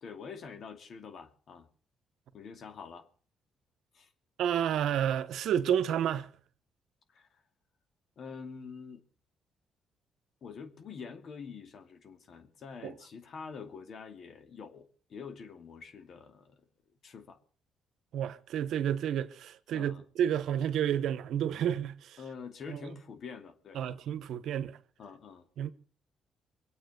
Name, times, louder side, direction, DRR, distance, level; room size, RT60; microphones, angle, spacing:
voice 1, 0.0-1.7 2.3-3.1 3.9-4.1 7.1-7.3 8.2-9.0 10.4-16.6 17.0-17.4 19.7-20.0 22.2-23.8 25.0-25.5, left 5 dB, 60° left, 2.6 m, -46 dB
voice 2, 4.4-6.3 12.8-12.9 18.1-22.2 22.7-22.8 23.7-24.8 25.6-25.7, right 9 dB, 75° right, 1.1 m, -30 dB
24.0 x 8.6 x 6.8 m
cardioid pair, 90°, 0 cm